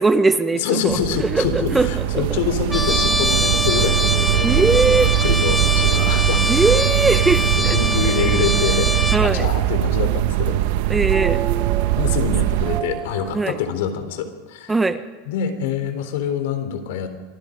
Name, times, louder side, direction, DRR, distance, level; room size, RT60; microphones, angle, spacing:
voice 1, 0.0-2.2 4.4-5.1 6.5-7.8 9.1-9.5 10.9-11.4 13.3-13.5 14.7-15.0, right 3 dB, 10° right, 11 dB, 1.2 m, -20 dB
voice 2, 0.5-4.8 5.2-6.7 7.3-10.6 12.0-14.8 15.3-17.1, left 7 dB, 75° left, 8 dB, 3.9 m, -26 dB
sound 1, 0.9-12.8, right 13 dB, 70° right, 1.2 m, -21 dB
Trumpet, 2.7-9.2, left 1 dB, 5° left, 1.6 m, -23 dB
sound 2, 6.6-13.4, right 10 dB, 35° right, 0.8 m, -34 dB
27.0 x 24.0 x 5.4 m, 1.3 s
supercardioid pair, 120°, 0 cm